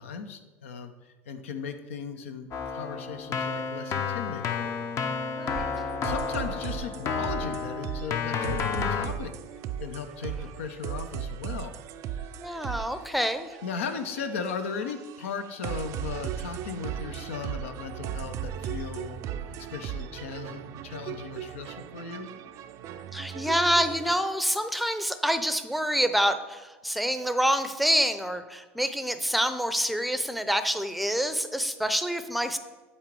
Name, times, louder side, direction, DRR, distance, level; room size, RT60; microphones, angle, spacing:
voice 1, 0.0-4.9 5.6-9.3 9.8-11.8 12.2-12.3 13.6-22.3, left 5 dB, 75° left, 8 dB, 0.7 m, -37 dB
Keyboard (musical), 2.5-9.1, left 5 dB, 45° left, 0.7 m, -31 dB
voice 2, 5.4-5.7 12.4-13.5 23.1-32.6, equal, ahead, 10 dB, 0.6 m, -27 dB
sound 1, 5.5-24.2, right 9 dB, 50° right, 0.5 m, -37 dB
8.7 x 4.2 x 4.6 m, 1.3 s
hypercardioid pair, 80°, 7 cm